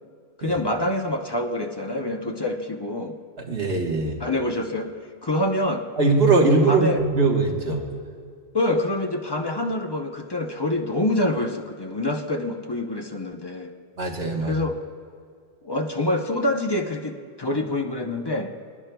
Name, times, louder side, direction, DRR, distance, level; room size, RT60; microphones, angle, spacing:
voice 1, 0.4-3.2 4.2-4.9 5.2-5.9 6.7-7.0 8.5-13.7 14.4-14.8 15.6-18.5, left 1 dB, 30° left, 3 dB, 0.6 m, -26 dB
voice 2, 3.5-4.2 6.0-7.8 14.0-14.5, right 3 dB, 65° right, 0 dB, 1.6 m, -21 dB
25.5 x 10.5 x 2.2 m, 2.2 s
omnidirectional pair, 1.1 m